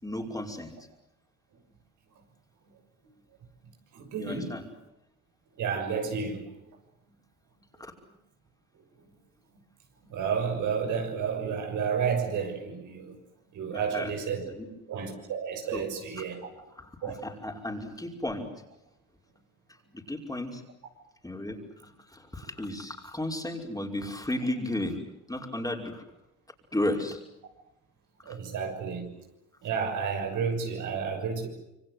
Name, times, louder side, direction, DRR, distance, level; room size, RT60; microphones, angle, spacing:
voice 1, 0.0-0.7 4.2-4.6 7.8-7.9 13.7-14.2 14.4-14.7 15.7-15.9 16.2-16.3 16.7-18.5 19.9-20.6 21.2-25.0 25.3-26.0 26.7-27.2 28.3-28.4, left 1 dB, 10° left, 5.5 m, -34 dB
voice 2, 3.9-4.5 5.6-6.4 10.1-13.1 13.5-14.4 14.9-16.4 17.0-17.2 28.2-29.1 29.6-31.5, right 6 dB, 80° right, 6.5 m, -31 dB
27.5 x 24.0 x 8.0 m
cardioid pair, 90°, 30 cm